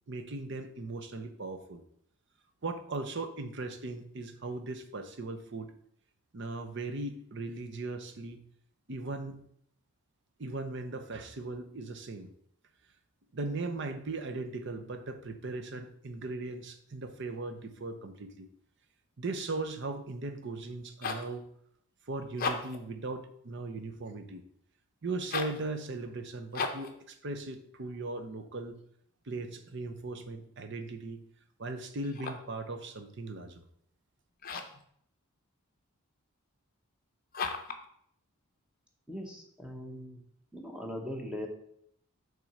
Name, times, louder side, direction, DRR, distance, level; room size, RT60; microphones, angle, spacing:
voice 1, 0.1-1.8 2.6-5.7 6.3-8.4 8.9-9.4 10.4-12.3 13.3-18.5 19.2-21.5 22.1-24.4 25.0-28.8 29.2-31.2 31.6-33.6, right 2 dB, 50° right, 8 dB, 0.7 m, -38 dB
sound 1, 20.7-21.3 22.3-22.9 25.2-25.6 26.5-27.0 32.0-32.6 34.4-34.8 37.3-37.8, left 4 dB, 40° left, 0.6 m, -36 dB
voice 2, 39.1-40.2 40.5-41.5, equal, 5° right, 1 dB, 0.9 m, -40 dB
6.1 x 3.7 x 5.4 m, 0.69 s
head